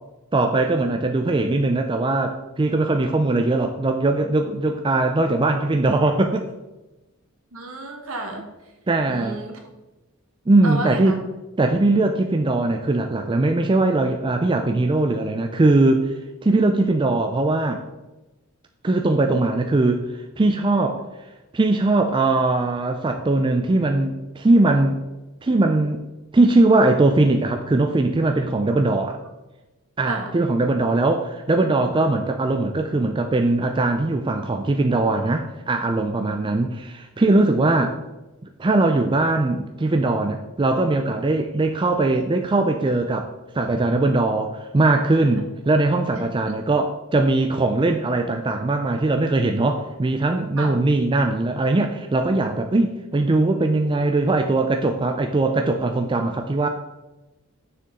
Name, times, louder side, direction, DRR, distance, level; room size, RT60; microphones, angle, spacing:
voice 1, 0.3-6.5 8.9-9.4 10.5-11.2 11.6-16.1 16.4-17.8 18.8-21.0 21.5-25.0 25.4-26.0 26.3-29.2 30.0-37.9 38.6-43.3 43.5-56.7, right 2 dB, 20° right, 5 dB, 0.4 m, -20 dB
voice 2, 7.5-8.4 9.1-9.6 10.6-11.1 28.7-28.8 30.1-30.4 36.1-36.3 46.4-46.6 50.6-50.8, right 1 dB, 65° right, 3 dB, 1.5 m, -32 dB
6.7 x 6.7 x 3.7 m, 1.0 s
head